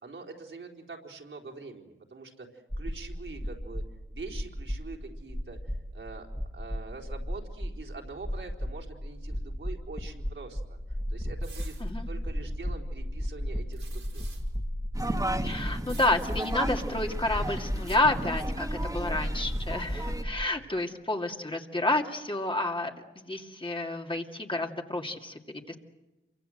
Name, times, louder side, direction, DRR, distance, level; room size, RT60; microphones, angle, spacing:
voice 1, 0.0-3.8 4.1-6.3 6.5-10.8 11.1-11.8 12.1-14.2 20.7-20.8, right 4 dB, 70° right, 0 dB, 4.1 m, -44 dB
sound 1, 2.7-20.4, equal, 5° left, 2.1 m, -35 dB
sound 2, 11.4-11.9 13.7-14.5 15.8-16.5 17.8-18.0, right 5 dB, 90° right, 5.2 m, -50 dB
sound 3, 14.9-20.2, right 1 dB, 15° right, 1.8 m, -36 dB
voice 2, 15.4-25.8, left 2 dB, 25° left, 3 dB, 2.4 m, -30 dB
28.0 x 24.5 x 7.9 m, 1.0 s
wide cardioid pair, 80°, 20 cm